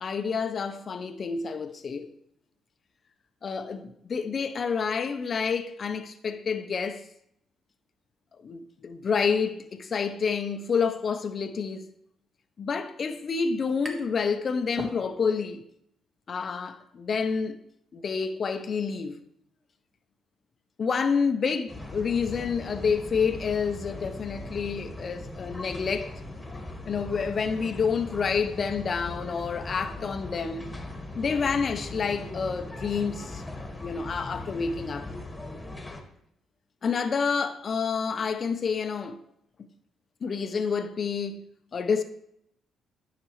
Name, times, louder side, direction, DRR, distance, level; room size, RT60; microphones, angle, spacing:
voice 1, 0.0-2.1 3.4-7.1 8.4-11.9 12.6-15.6 16.3-17.5 17.9-19.2 20.8-26.1 26.9-30.7 31.1-33.4 33.8-35.1 36.8-39.2 40.2-41.4 41.7-42.0, left 5 dB, 45° left, 0.6 m, -28 dB
sound 1, 13.2-14.2 14.6-15.5, right 1 dB, 30° right, 1.5 m, -40 dB
sound 2, 21.7-36.0, left 2 dB, 10° left, 1.5 m, -39 dB
12.5 x 5.9 x 3.1 m
cardioid pair, 90°, 0 cm